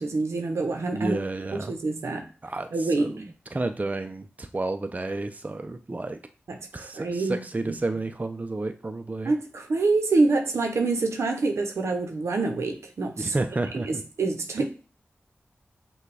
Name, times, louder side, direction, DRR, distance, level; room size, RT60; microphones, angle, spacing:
voice 1, 0.0-1.2 1.5-2.2 2.7-3.2 6.5-7.4 7.6-7.8 9.2-13.4 13.7-14.7, right 3 dB, 85° right, 4 dB, 0.7 m, -26 dB
voice 2, 0.9-1.7 2.4-2.7 3.0-6.2 6.7-9.3 13.2-14.0 14.6-14.7, right 2 dB, 35° right, 7 dB, 0.5 m, -31 dB
5.8 x 2.3 x 3.3 m, 0.36 s
cardioid pair, 40°, 5 cm